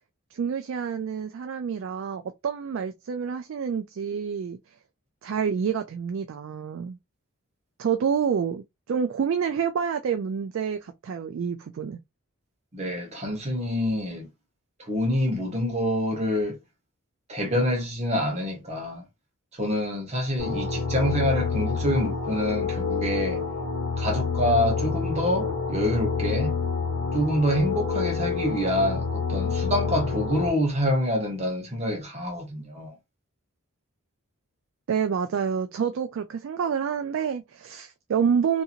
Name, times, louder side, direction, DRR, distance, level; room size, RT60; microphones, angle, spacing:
voice 1, 0.3-4.6 5.2-7.0 7.8-12.0 34.9-38.6, right 7 dB, 60° right, 0.3 m, -28 dB
voice 2, 12.7-14.3 14.9-16.6 17.3-19.0 19.5-23.4 24.0-26.6 27.1-32.9, equal, 30° right, 0.9 m, -26 dB
sound 1, 20.4-30.5, left 5 dB, 50° left, 1.3 m, -28 dB
2.8 x 2.6 x 2.4 m
head